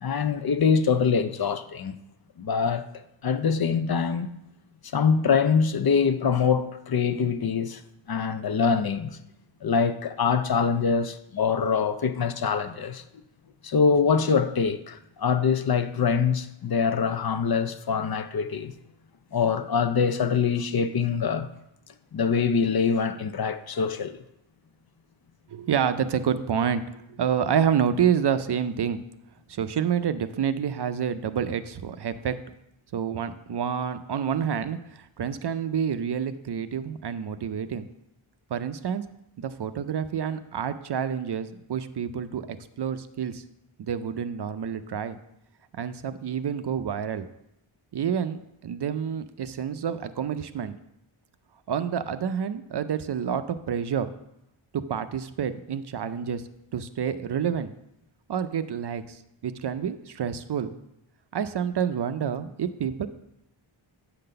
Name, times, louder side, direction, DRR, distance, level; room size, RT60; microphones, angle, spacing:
voice 1, 0.0-1.9 2.4-2.8 3.2-4.3 4.9-7.8 8.1-9.1 9.6-13.0 13.6-18.7 19.3-21.5 22.1-24.2, left 6 dB, 50° left, 0.5 m, -24 dB
voice 2, 25.5-29.0 29.5-32.4 32.9-37.9 38.5-39.0 39.4-43.4 43.8-45.2 45.7-47.3 47.9-50.8 51.7-54.1 54.7-56.4 56.7-57.7 58.3-60.7 61.3-63.1, right 8 dB, 55° right, 0.5 m, -28 dB
8.3 x 3.9 x 6.6 m
wide cardioid pair, 110°, 49 cm